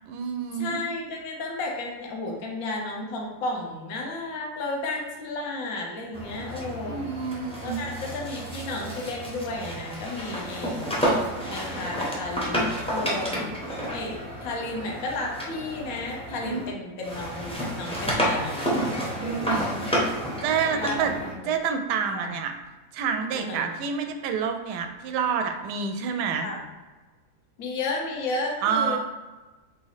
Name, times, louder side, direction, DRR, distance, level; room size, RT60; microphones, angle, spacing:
voice 1, 0.1-0.8 6.9-7.8 16.4-16.7 19.2-19.9 20.4-21.1 21.4-22.5 22.9-26.5 28.6-29.0, right 6 dB, 85° right, 6 dB, 1.2 m, -28 dB
voice 2, 0.6-7.0 7.6-11.0 11.4-13.4 13.9-19.7 20.7-21.5 22.1-22.3 23.3-23.7 26.4-26.7 27.6-29.0, left 2 dB, 60° left, -1 dB, 1.2 m, -33 dB
sound 1, 6.1-16.7 17.0-21.4, equal, 5° left, 0.4 m, -30 dB
4.0 x 3.0 x 4.0 m, 1.2 s
omnidirectional pair, 1.7 m